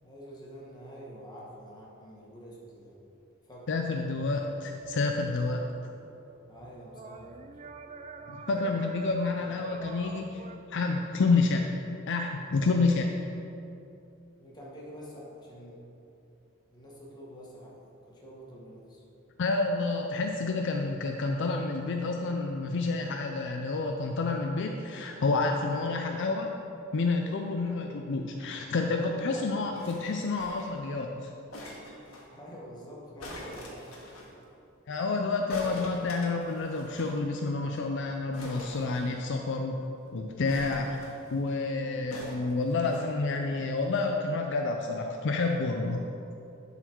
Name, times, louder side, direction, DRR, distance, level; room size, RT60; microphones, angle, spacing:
voice 1, 0.0-3.0 3.4-4.0 6.5-7.3 14.4-15.8 16.7-19.0 27.6-27.8 28.9-29.6 32.3-33.9 41.8-42.1, equal, 20° left, -5 dB, 1.5 m, -47 dB
voice 2, 3.7-5.6 8.3-10.4 10.7-11.7 12.1-13.1 19.4-26.5 26.9-31.3 34.9-39.9 40.1-46.0, left 3 dB, 60° left, 3 dB, 0.5 m, -29 dB
sound 1, 4.0-10.6, right 4 dB, 35° right, 0.4 m, -47 dB
sound 2, 29.7-30.8 31.5-32.3 33.2-34.3 35.5-37.2 37.5-37.6 37.8-37.9 38.3-39.5 40.4-41.4 42.1-43.1 43.8-43.9, left 1 dB, 90° left, 1.4 m, -44 dB
11.0 x 4.1 x 4.5 m, 2.7 s
head